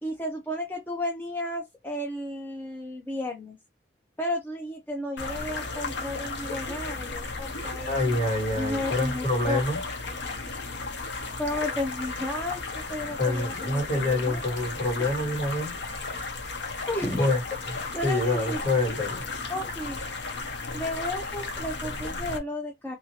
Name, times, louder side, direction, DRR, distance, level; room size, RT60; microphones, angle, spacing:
voice 1, 0.0-3.6 4.2-8.0 8.5-9.6 11.4-14.4 16.9-17.3 17.9-18.6 19.5-20.0 20.7-23.0, left 1 dB, 10° left, 0.5 m, -33 dB
sound 1, 5.2-22.4, left 3 dB, 90° left, 0.8 m, -34 dB
voice 2, 7.9-9.8 13.2-15.8 17.2-17.6 18.0-19.2, left 2 dB, 45° left, 2.0 m, -26 dB
2.8 x 2.6 x 2.8 m
head